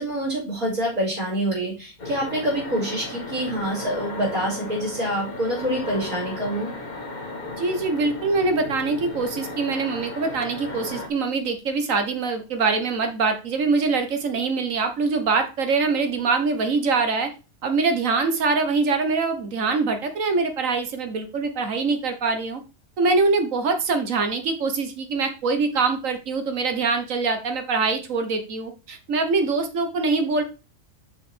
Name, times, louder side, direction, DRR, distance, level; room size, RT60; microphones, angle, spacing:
voice 1, 0.0-6.7, right 1 dB, 85° right, -7 dB, 4.2 m, -26 dB
sound 1, 2.0-11.1, left 2 dB, 35° left, 1.2 m, -35 dB
voice 2, 7.6-17.3 17.6-22.6 23.0-30.4, right 4 dB, 65° right, 7 dB, 1.5 m, -24 dB
6.4 x 5.5 x 4.4 m, 0.32 s
omnidirectional pair, 1.5 m